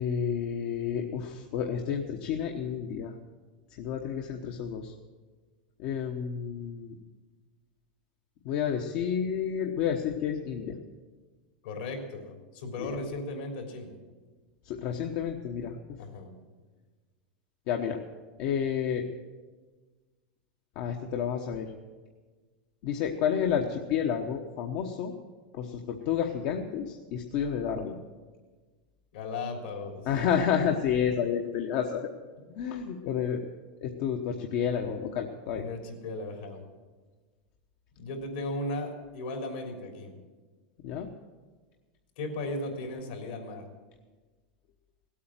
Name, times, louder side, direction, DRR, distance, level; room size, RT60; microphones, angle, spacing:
voice 1, 0.0-3.1 3.8-4.9 5.8-6.9 8.4-10.8 12.8-12.9 14.6-16.0 17.7-18.0 18.4-19.0 20.8-21.7 22.8-25.1 25.5-28.0 30.0-32.1 32.5-33.5 33.8-35.6 40.8-41.1, left 8 dB, 55° left, 3 dB, 1.0 m, -30 dB
voice 2, 11.6-14.0 16.0-16.3 29.1-30.1 31.2-31.3 35.5-36.6 38.0-40.2 42.2-43.7, left 2 dB, 75° left, 2 dB, 3.5 m, -36 dB
16.5 x 8.6 x 7.5 m, 1.4 s
supercardioid pair, 130°, 5 cm